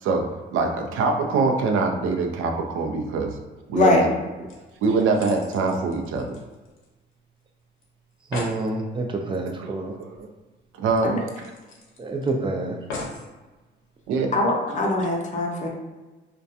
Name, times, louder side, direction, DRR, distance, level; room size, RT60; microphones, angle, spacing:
voice 1, 0.0-3.4 3.7-4.1 4.4-4.5 4.8-6.4 9.5-9.8 10.1-10.3 10.8-11.5 14.1-14.3, right 4 dB, 85° right, 3 dB, 0.4 m, -24 dB
voice 2, 3.7-4.1 11.0-11.2 14.3-15.7, left 2 dB, 40° left, -1 dB, 0.6 m, -22 dB
sound 1, 4.5-7.1 7.4-7.5 7.8-7.9 8.1-8.6 10.1-10.2 10.6-10.7 11.3-12.3 12.9-13.3 14.0-14.1, left 3 dB, 90° left, 0.6 m, -38 dB
voice 3, 8.3-10.0 12.0-12.8, right 2 dB, 25° right, 3 dB, 0.4 m, -27 dB
2.3 x 2.2 x 2.6 m, 1.2 s
cardioid pair, 90°, 20 cm